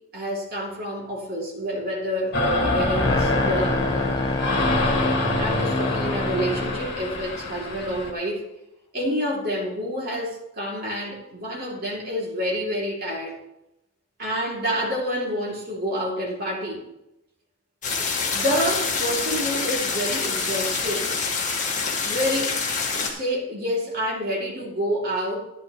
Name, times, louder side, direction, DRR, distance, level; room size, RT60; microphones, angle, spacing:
voice 1, 0.1-2.4 2.7-4.2 4.8-5.1 5.4-8.5 8.9-13.3 14.2-16.9 18.3-21.1 22.0-22.6 22.9-25.4, equal, 50° right, -3 dB, 2.7 m, -28 dB
sound 1, 2.3-8.1, left 1 dB, 55° left, 1.9 m, -25 dB
sound 2, 3.0-6.9, left 3 dB, 20° left, 0.3 m, -28 dB
sound 3, 17.8-23.1, left 4 dB, 40° left, 1.7 m, -26 dB
12.0 x 9.6 x 3.1 m, 0.88 s
head